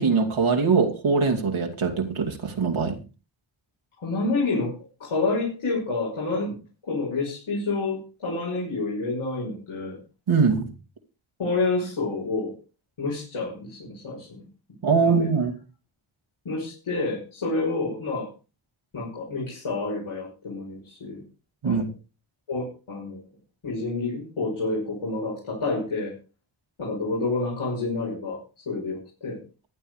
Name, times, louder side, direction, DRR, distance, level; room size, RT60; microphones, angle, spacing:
voice 1, 0.0-3.0 10.3-10.7 14.8-15.5 21.6-21.9, right 5 dB, 80° right, 1 dB, 2.7 m, -22 dB
voice 2, 4.0-6.6 6.8-10.0 11.4-12.5 13.0-14.4 15.0-15.3 16.4-18.3 18.9-21.2 21.6-21.9 22.5-23.2 23.6-26.1 26.8-28.4 28.7-29.4, left 3 dB, 85° left, -4 dB, 6.4 m, -28 dB
15.0 x 10.5 x 4.9 m, 0.33 s
wide cardioid pair, 135°, 48 cm